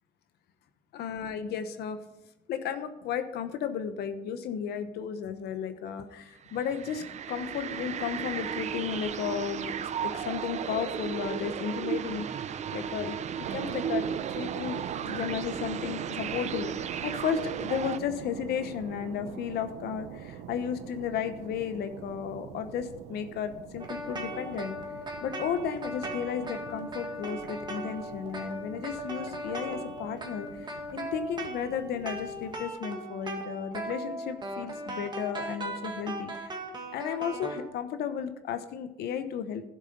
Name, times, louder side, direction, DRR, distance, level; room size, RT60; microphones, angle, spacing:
voice 1, 0.9-2.0 2.5-9.7 10.0-16.7 17.0-24.8 25.2-36.5 36.9-39.7, left 8 dB, 70° left, 9 dB, 1.0 m, -34 dB
sound 1, 6.4-18.0, right 8 dB, 45° right, 0.6 m, -35 dB
sound 2, 13.4-32.7, right 8 dB, 80° right, 0.8 m, -43 dB
sound 3, 23.8-37.6, right 1 dB, 25° right, 1.9 m, -38 dB
12.0 x 7.3 x 5.3 m, 0.87 s
cardioid pair, 110°, 17 cm